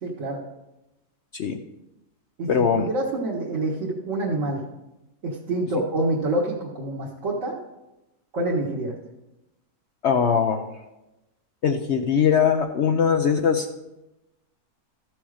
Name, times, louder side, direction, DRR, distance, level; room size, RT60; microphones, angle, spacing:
voice 1, 0.0-0.4 2.4-4.6 5.2-7.6 8.3-8.9, right 2 dB, 55° right, -5 dB, 1.7 m, -27 dB
voice 2, 2.5-2.9 10.0-10.7 11.6-13.7, left 7 dB, 60° left, 5 dB, 0.8 m, -21 dB
13.5 x 6.2 x 4.9 m, 0.97 s
omnidirectional pair, 1.6 m